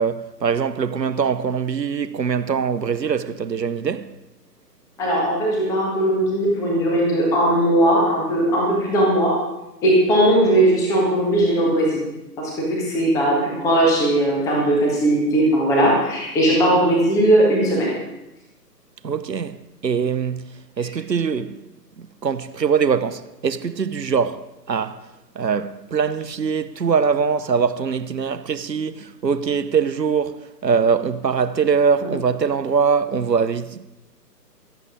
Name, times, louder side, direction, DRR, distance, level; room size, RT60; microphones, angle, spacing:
voice 1, 0.0-4.1 19.0-20.5 20.8-21.6 22.0-25.1 25.3-33.9, right 6 dB, 80° right, 0.9 m, -22 dB
voice 2, 5.0-9.3 9.8-12.0 12.4-17.9, right 1 dB, 5° left, 1.5 m, -18 dB
24.0 x 8.1 x 3.8 m
figure-of-eight pair, 145°, 50 cm